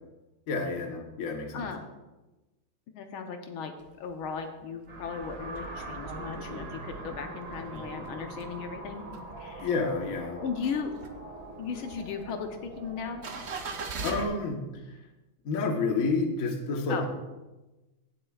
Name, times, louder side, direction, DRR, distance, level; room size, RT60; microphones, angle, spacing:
voice 1, 0.5-1.7 9.6-10.4 14.0-15.0 15.4-17.1, left 3 dB, 50° left, 2 dB, 1.2 m, -29 dB
voice 2, 2.9-9.0 9.4-9.7 10.4-10.9 11.6-13.2 14.0-14.2 16.9-17.0, left 6 dB, 75° left, 5 dB, 1.6 m, -36 dB
sound 1, 3.8-4.4 4.9-5.0 5.1-8.6 8.9-9.9 10.3-14.3, right 4 dB, 80° right, 0.6 m, -41 dB
sound 2, 4.9-14.5, right 2 dB, 50° right, 1.9 m, -43 dB
16.5 x 7.7 x 2.3 m, 1.1 s
omnidirectional pair, 2.3 m